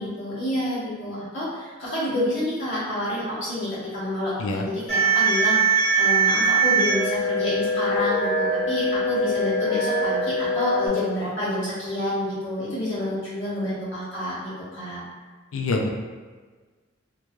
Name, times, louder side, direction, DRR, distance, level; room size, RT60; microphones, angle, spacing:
voice 1, 0.0-15.0, left 1 dB, 65° left, -10 dB, 1.1 m, -28 dB
sound 1, 4.9-10.9, right 3 dB, 15° right, 1.2 m, -22 dB
voice 2, 15.5-15.9, left 3 dB, 85° left, 2 dB, 0.4 m, -25 dB
3.1 x 2.4 x 2.2 m, 1.4 s
head